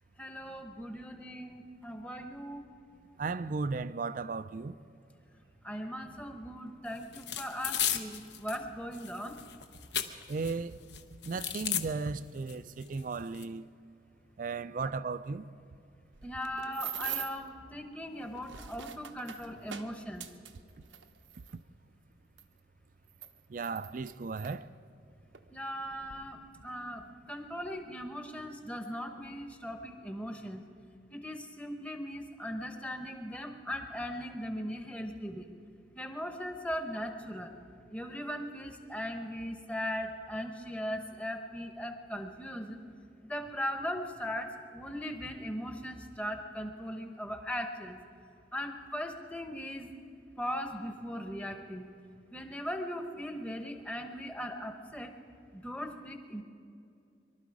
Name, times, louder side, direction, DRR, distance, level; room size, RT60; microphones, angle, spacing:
voice 1, 0.2-2.6 5.6-9.4 14.8-14.9 16.2-20.3 25.5-30.6 31.1-35.5 35.9-37.5 37.9-42.8 43.2-48.0 48.5-49.9 50.4-51.9 52.3-55.1 55.5-56.4, equal, 5° left, 1.0 m, -39 dB
voice 2, 3.2-4.8 10.3-10.8 11.2-13.7 14.4-15.5 23.5-24.7, right 4 dB, 45° right, 0.4 m, -35 dB
sound 1, 7.1-8.6 8.9-10.5 10.9-11.8 12.5-12.6 12.8-13.4, left 10 dB, 65° left, 0.9 m, -34 dB
sound 2, 16.1-17.5 18.2-21.6 22.4-22.5 23.1-24.6 25.3-25.5 25.8-26.2, right 10 dB, 85° right, 0.8 m, -43 dB
23.5 x 12.5 x 4.8 m
head